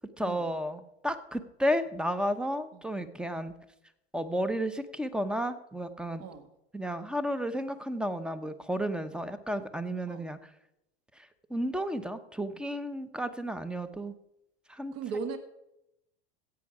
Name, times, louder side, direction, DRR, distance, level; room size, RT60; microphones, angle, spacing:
voice 1, 0.2-3.5 4.1-6.2 6.7-10.4 11.5-14.1 14.7-14.9, equal, 5° right, 12 dB, 0.8 m, -32 dB
voice 2, 14.9-15.4, right 5 dB, 50° right, 8 dB, 1.8 m, -38 dB
15.5 x 8.4 x 4.9 m, 0.86 s
hypercardioid pair, 110°, 32 cm